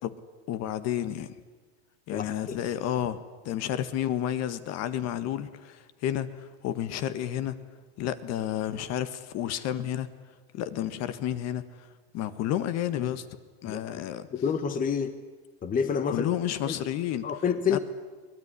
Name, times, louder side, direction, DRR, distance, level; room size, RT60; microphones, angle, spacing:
voice 1, 0.5-1.3 2.1-7.6 8.0-10.1 10.5-11.6 12.1-13.2 13.6-14.3 16.1-17.3 17.7-17.8, left 11 dB, 45° left, 13 dB, 1.7 m, -31 dB
voice 2, 2.1-2.6 13.7-14.0 14.3-15.2 15.6-16.3 16.7-16.8 17.2-17.8, left 6 dB, 25° left, 11 dB, 1.2 m, -28 dB
23.5 x 19.0 x 10.0 m, 1.4 s
supercardioid pair, 125°, 36 cm